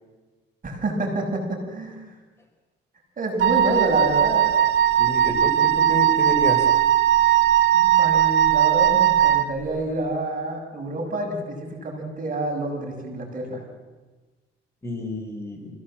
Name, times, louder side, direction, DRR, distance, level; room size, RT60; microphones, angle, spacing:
voice 1, 0.6-2.0 3.2-4.5 7.7-13.6, right 2 dB, 45° right, 2 dB, 6.4 m, -28 dB
Wind instrument woodwind instrument, 3.4-9.5, right 11 dB, 80° right, 1.1 m, -19 dB
voice 2, 5.0-6.7 14.8-15.7, left 1 dB, 15° left, 2 dB, 5.0 m, -29 dB
28.0 x 17.0 x 7.6 m, 1.3 s
cardioid pair, 90°, 20 cm